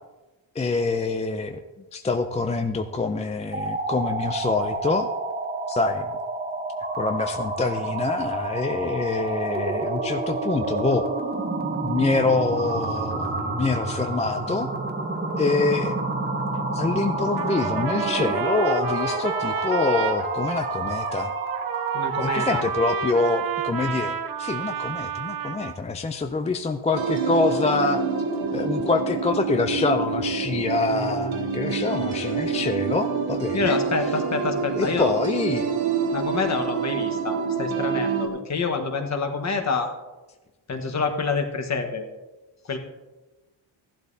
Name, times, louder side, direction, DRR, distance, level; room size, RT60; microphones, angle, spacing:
voice 1, 0.6-1.6 1.9-5.1 5.7-6.1 7.0-11.1 11.8-14.7 15.4-16.0 16.7-21.3 22.2-28.0 28.5-33.8 34.7-35.7, left 3 dB, 15° left, 6 dB, 0.3 m, -25 dB
sound 1, 3.4-22.8, right 3 dB, 20° right, 0.9 m, -29 dB
Trumpet, 17.4-25.8, right 8 dB, 50° right, 0.7 m, -30 dB
voice 2, 21.9-22.6 33.5-35.1 36.1-39.9 40.7-42.1 42.7-42.8, left 4 dB, 35° left, 5 dB, 1.2 m, -27 dB
sound 2, 26.9-38.3, right 5 dB, 85° right, 1.8 m, -27 dB
15.0 x 11.5 x 2.7 m, 1.1 s
wide cardioid pair, 155°, 45 cm